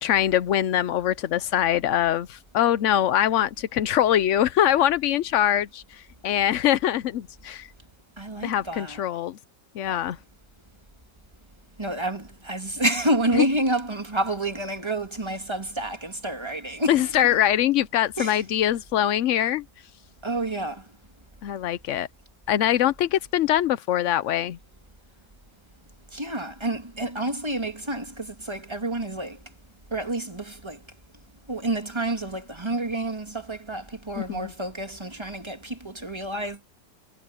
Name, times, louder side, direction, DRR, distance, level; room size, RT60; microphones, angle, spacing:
voice 1, 0.0-7.7 8.4-9.4 9.8-10.2 16.9-19.6 21.4-22.1 22.5-24.6 34.2-34.5, left 11 dB, 75° left, 0.7 m, -23 dB
voice 2, 8.2-9.0 9.9-10.0 11.8-17.1 18.2-18.4 20.2-20.8 26.1-29.4 29.9-30.8 31.5-36.6, right 1 dB, 15° right, 2.0 m, -29 dB
omnidirectional pair, 1.9 m